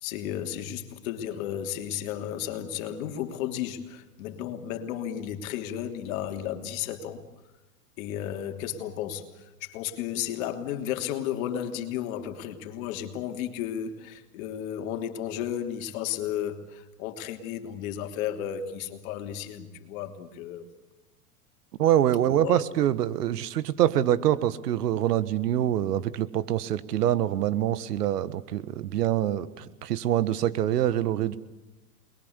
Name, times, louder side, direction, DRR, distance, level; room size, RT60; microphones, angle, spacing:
voice 1, 0.0-7.2 8.0-20.6 22.2-22.6, left 10 dB, 60° left, 3.2 m, -33 dB
voice 2, 21.8-31.4, right 11 dB, 80° right, 1.6 m, -25 dB
29.0 x 22.0 x 8.2 m
hypercardioid pair, 120°, 47 cm